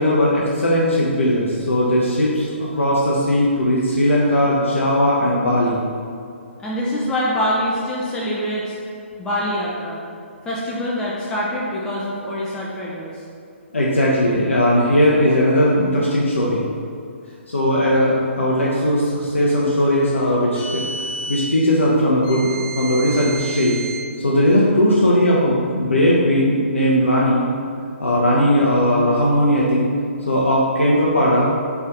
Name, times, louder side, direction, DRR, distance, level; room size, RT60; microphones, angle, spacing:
voice 1, 0.0-5.8 13.7-16.7 17.5-20.8 21.3-23.8 24.2-27.4 28.0-29.9 30.3-31.5, equal, 70° left, -5 dB, 0.7 m, -18 dB
voice 2, 6.6-8.8 9.2-10.0 10.4-13.2, equal, 10° left, -6 dB, 0.4 m, -24 dB
sound 1, 20.5-21.5 22.2-24.1, right 2 dB, 35° left, 0.9 m, -31 dB
4.0 x 3.4 x 3.7 m, 2.3 s
figure-of-eight pair, 130°, 7 cm